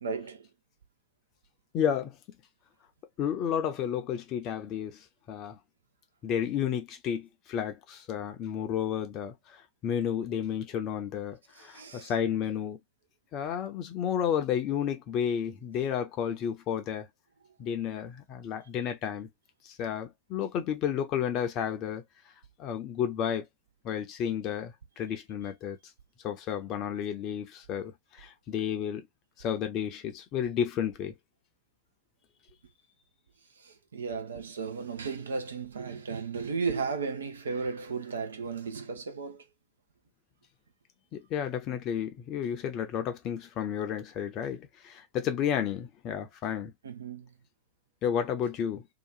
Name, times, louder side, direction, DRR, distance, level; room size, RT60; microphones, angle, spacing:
voice 1, 0.0-0.5 11.6-12.1 33.6-39.4 46.8-47.3, right 5 dB, 70° right, 0.7 m, -35 dB
voice 2, 1.7-2.2 3.2-5.6 6.2-12.8 13.3-17.1 17.6-19.3 19.6-22.0 22.6-23.4 23.8-25.8 26.2-29.1 29.4-31.1 41.1-46.7 48.0-48.9, left 8 dB, 35° left, 0.7 m, -32 dB
2.9 x 2.5 x 2.5 m
figure-of-eight pair, 90°, 0 cm